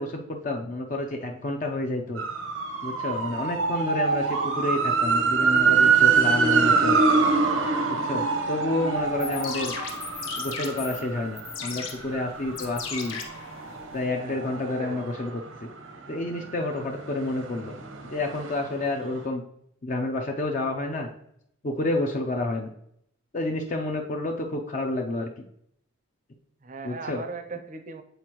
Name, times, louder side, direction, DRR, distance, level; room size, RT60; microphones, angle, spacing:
voice 1, 0.0-2.2 2.8-7.0 7.9-9.8 10.4-13.2 13.9-15.7 16.1-17.7 18.0-19.4 19.8-21.1 21.6-22.7 23.3-25.3 26.8-27.2, left 2 dB, 40° left, 1 dB, 0.5 m, -29 dB
sound 1, 2.2-15.9 16.3-18.9 19.1-19.2, right 5 dB, 80° right, 0.8 m, -25 dB
sound 2, 9.0-14.0, left 6 dB, 80° left, 0.9 m, -37 dB
voice 2, 14.0-15.0 26.6-28.0, right 3 dB, 40° right, 8 dB, 0.5 m, -39 dB
7.9 x 4.4 x 2.9 m, 0.73 s
head